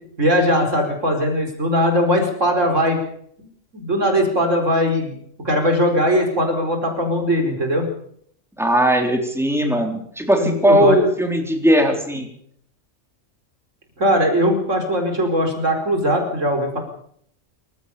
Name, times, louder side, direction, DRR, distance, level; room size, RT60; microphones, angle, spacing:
voice 1, 0.2-3.0 3.7-5.1 5.4-7.9 10.4-11.0 14.0-16.8, equal, 75° right, 4 dB, 5.0 m, -19 dB
voice 2, 8.6-12.3, equal, ahead, 2 dB, 4.0 m, -18 dB
27.0 x 15.0 x 7.1 m, 0.67 s
omnidirectional pair, 1.3 m